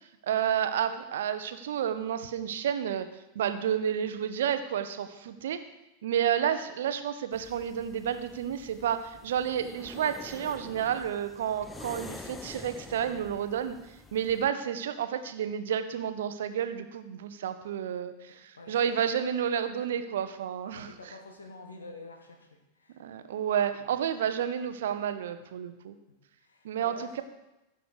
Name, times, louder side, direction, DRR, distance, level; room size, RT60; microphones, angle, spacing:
voice 1, 0.2-3.1 3.3-5.6 6.0-13.8 14.1-20.9 23.0-25.9 26.6-27.2, right 9 dB, 60° right, 10 dB, 0.8 m, -30 dB
sound 1, 7.3-14.5, left 3 dB, 10° left, 0.8 m, -47 dB
voice 2, 18.3-18.8 20.7-23.0 23.8-23.9 26.1-27.2, left 2 dB, 75° left, 4 dB, 1.8 m, -49 dB
15.5 x 6.5 x 4.8 m, 0.95 s
figure-of-eight pair, 90°, 0 cm